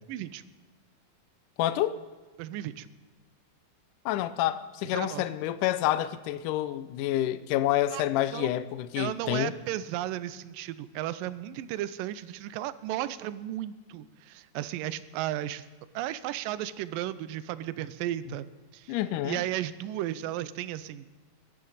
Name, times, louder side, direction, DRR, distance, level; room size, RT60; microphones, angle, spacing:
voice 1, 0.1-0.4 2.4-2.9 4.9-5.2 7.9-8.5 9.0-15.6 16.0-18.5 18.7-19.0 19.2-21.2, right 13 dB, 85° right, 2.3 m, -34 dB
voice 2, 1.6-2.0 4.1-9.5 18.9-19.4, left 13 dB, 80° left, 2.1 m, -28 dB
22.0 x 10.5 x 4.1 m
omnidirectional pair, 3.9 m